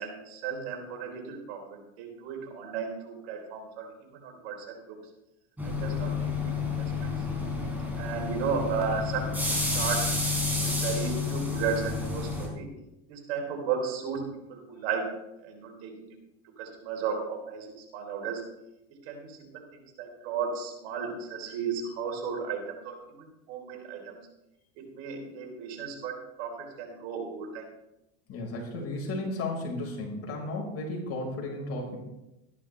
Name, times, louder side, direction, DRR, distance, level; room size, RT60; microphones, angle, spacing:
voice 1, 0.0-3.9 4.2-5.0 5.6-7.1 8.0-10.1 10.6-12.7 13.1-15.1 15.4-16.1 16.6-18.4 19.1-24.2 24.8-27.7, right 6 dB, 70° right, 2 dB, 3.6 m, -35 dB
sound 1, 5.6-12.5, left 4 dB, 5° right, 4.1 m, -30 dB
voice 2, 28.3-32.0, left 2 dB, 50° left, 0 dB, 4.9 m, -34 dB
13.5 x 11.5 x 3.3 m, 0.92 s
supercardioid pair, 105°, 32 cm